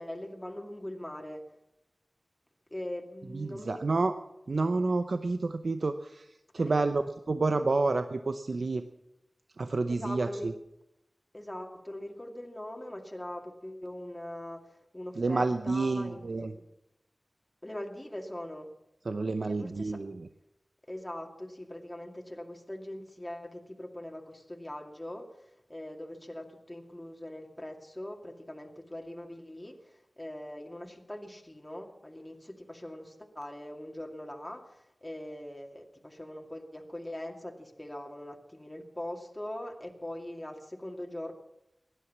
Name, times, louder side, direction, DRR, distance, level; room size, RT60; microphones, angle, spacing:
voice 1, 0.0-1.5 2.7-3.8 6.6-6.9 9.9-10.5 11.3-16.6 17.6-18.7 19.4-20.0 20.9-41.3, left 1 dB, 15° left, 2 dB, 2.3 m, -42 dB
voice 2, 3.3-4.1 4.5-7.0 7.3-8.8 9.6-10.5 15.2-16.5 19.1-20.3, right 3 dB, 80° right, 8 dB, 0.7 m, -29 dB
16.5 x 11.5 x 7.3 m, 0.88 s
wide cardioid pair, 60°, 0 cm